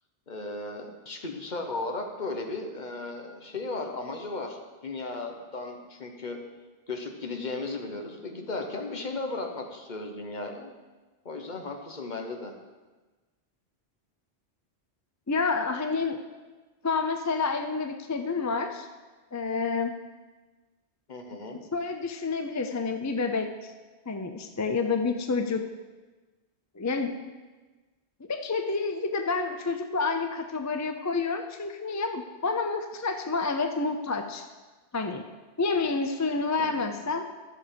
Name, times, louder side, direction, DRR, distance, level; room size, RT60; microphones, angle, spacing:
voice 1, 0.3-6.4 6.9-10.7 11.2-12.5 21.1-21.6 36.6-37.0, left 3 dB, 45° left, 3 dB, 1.2 m, -36 dB
voice 2, 15.3-16.2 16.8-18.9 19.3-19.9 21.7-23.7 24.1-25.6 26.8-27.1 28.3-34.5 34.9-35.2 35.6-37.2, left 4 dB, 30° left, 6 dB, 0.3 m, -29 dB
13.0 x 6.8 x 5.1 m, 1.3 s
omnidirectional pair, 1.2 m